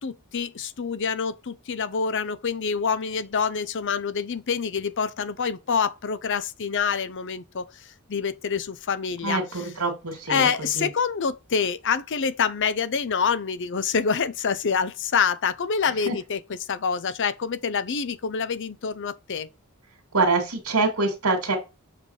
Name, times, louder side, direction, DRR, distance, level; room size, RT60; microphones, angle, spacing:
voice 1, 0.0-7.7 8.1-9.4 10.3-16.4 16.7-19.5, left 6 dB, 60° left, 0.6 m, -26 dB
voice 2, 9.2-10.5 10.7-10.9 16.1-16.2 20.1-21.6, right 3 dB, 85° right, 2.1 m, -25 dB
7.6 x 3.6 x 4.8 m
head